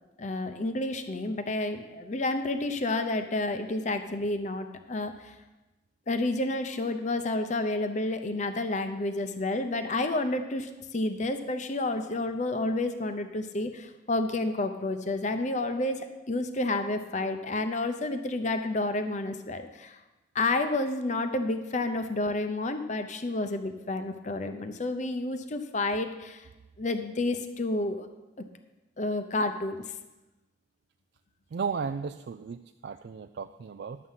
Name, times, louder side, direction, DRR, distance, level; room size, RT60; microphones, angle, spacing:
voice 1, 0.2-5.3 6.1-20.0 20.3-26.5 26.8-28.1 29.0-29.8, left 2 dB, 40° left, 8 dB, 0.7 m, -30 dB
voice 2, 31.5-34.0, right 5 dB, 60° right, 9 dB, 0.3 m, -35 dB
11.0 x 7.6 x 5.6 m, 1.1 s
head